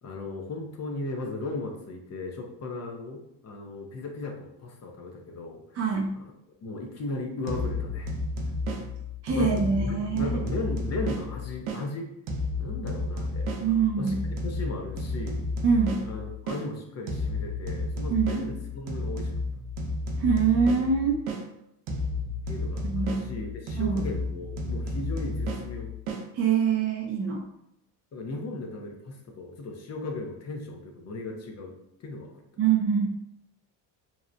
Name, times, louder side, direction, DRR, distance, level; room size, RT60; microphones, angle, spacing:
voice 1, 0.0-5.6 6.6-8.1 9.3-12.1 12.6-13.5 14.0-15.5 16.0-19.4 22.5-25.9 28.1-31.8 32.0-32.3, left 2 dB, 40° left, 2 dB, 0.6 m, -36 dB
voice 2, 5.7-6.1 9.2-10.4 13.6-14.2 15.6-16.0 18.1-18.4 20.2-21.2 22.8-23.2 23.8-24.0 26.3-27.5 32.6-33.1, right 6 dB, 35° right, -1 dB, 0.4 m, -24 dB
sound 1, 7.5-11.9 12.3-16.7 17.1-21.5 21.9-26.3, left 1 dB, 80° right, 0.6 m, -32 dB
2.8 x 2.1 x 2.4 m, 0.80 s
cardioid pair, 95°, 43 cm